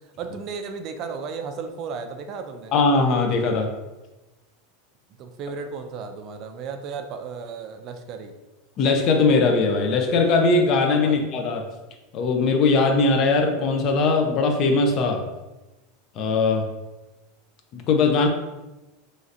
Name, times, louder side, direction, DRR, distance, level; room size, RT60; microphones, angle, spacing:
voice 1, 0.2-2.7 5.2-8.3 11.0-11.2, right 5 dB, 45° right, 6 dB, 0.3 m, -34 dB
voice 2, 2.7-3.7 8.8-11.6 12.1-15.2 16.2-16.6 17.7-18.3, left 3 dB, 40° left, 4 dB, 0.5 m, -20 dB
3.1 x 2.7 x 2.5 m, 1.1 s
supercardioid pair, 130°, 0 cm